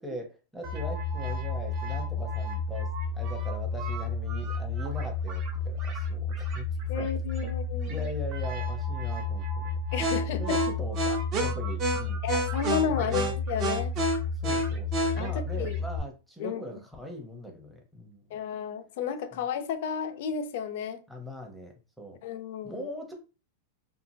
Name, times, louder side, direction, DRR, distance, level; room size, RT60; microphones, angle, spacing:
voice 1, 0.0-6.7 7.0-7.1 7.4-7.5 7.9-9.8 10.3-12.2 12.8-13.3 14.3-18.4 21.1-22.2 22.6-23.1, equal, ahead, 0.7 m, -41 dB
sound 1, 0.6-16.0, left 2 dB, 40° right, 0.8 m, -30 dB
voice 2, 6.9-8.1 9.9-10.6 12.2-14.0 15.2-15.8 16.4-16.6 18.3-21.0 22.2-22.8, left 7 dB, 65° left, 0.5 m, -32 dB
2.8 x 2.5 x 2.7 m
supercardioid pair, 130°, 0 cm